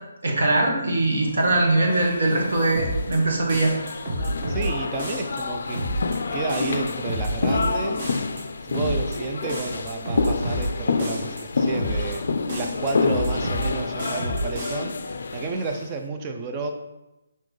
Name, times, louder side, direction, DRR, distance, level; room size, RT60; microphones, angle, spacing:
voice 1, 0.2-3.7, right 2 dB, 70° right, 0 dB, 1.0 m, -21 dB
sound 1, 1.2-15.9, left 4 dB, 65° left, 0.3 m, -28 dB
sound 2, 2.7-3.2 3.5-4.7 5.0-5.4 5.7-6.2 6.5-7.7 8.0-8.4 8.7-9.2 9.5-10.7 11.0-11.4 11.7-12.2 12.5-13.7 14.0-14.7, right 1 dB, 35° right, 1.3 m, -29 dB
voice 2, 4.5-5.8 6.3-8.1 8.6-16.7, right 3 dB, 20° right, 4 dB, 0.4 m, -31 dB
4.1 x 4.0 x 3.1 m, 0.98 s
hypercardioid pair, 165°, 0 cm